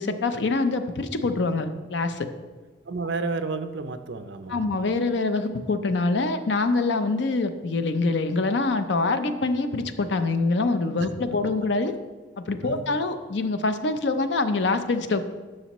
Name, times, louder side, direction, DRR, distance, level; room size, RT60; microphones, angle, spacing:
voice 1, 0.0-2.3 4.5-11.9 12.4-15.2, left 3 dB, 65° left, 9 dB, 0.5 m, -25 dB
voice 2, 2.9-4.6 11.0-11.1 12.6-12.8, right 3 dB, 65° right, 9 dB, 0.5 m, -31 dB
11.5 x 6.2 x 3.0 m, 1.4 s
head